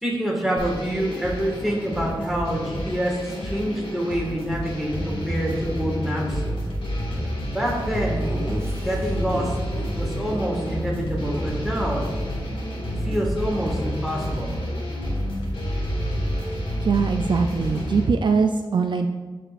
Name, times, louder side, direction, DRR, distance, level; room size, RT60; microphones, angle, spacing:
voice 1, 0.0-6.4 7.5-8.2 8.8-9.5 10.0-12.0 13.0-14.5, equal, 5° right, -3 dB, 1.8 m, -26 dB
sound 1, 0.6-18.0, equal, 85° left, 1.8 m, -29 dB
Laughter, 8.1-9.9 10.2-10.4 10.7-10.9 11.1-12.7, right 1 dB, 30° right, 0.9 m, -35 dB
voice 2, 16.8-19.1, right 5 dB, 60° right, 6 dB, 0.3 m, -22 dB
13.0 x 5.0 x 2.5 m, 1.3 s
wide cardioid pair, 120°, 9 cm